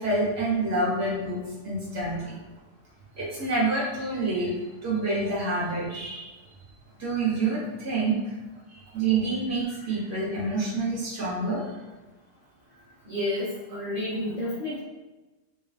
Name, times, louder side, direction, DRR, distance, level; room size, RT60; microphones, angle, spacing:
voice 1, 0.0-1.4 1.6-2.3 3.1-4.5 4.8-6.3 7.0-8.2 8.9-11.6, right 3 dB, 15° right, -7 dB, 0.9 m, -27 dB
voice 2, 13.0-14.8, left 1 dB, 40° right, -10 dB, 1.0 m, -30 dB
4.2 x 2.4 x 2.4 m, 1.1 s
omnidirectional pair, 1.2 m